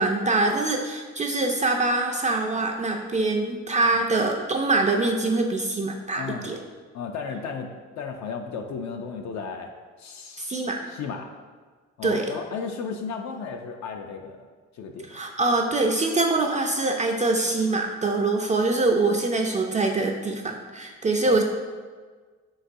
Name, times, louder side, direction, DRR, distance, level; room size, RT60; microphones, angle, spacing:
voice 1, 0.0-6.6 10.4-10.8 12.0-12.3 15.1-21.4, right 2 dB, 25° right, 2 dB, 0.3 m, -24 dB
voice 2, 6.1-6.5 6.9-7.7 8.0-9.7 10.0-11.2 12.0-14.4 14.7-15.1 21.2-21.4, left 5 dB, 65° left, 3 dB, 0.4 m, -34 dB
4.6 x 4.0 x 2.5 m, 1.5 s
cardioid pair, 90°, 30 cm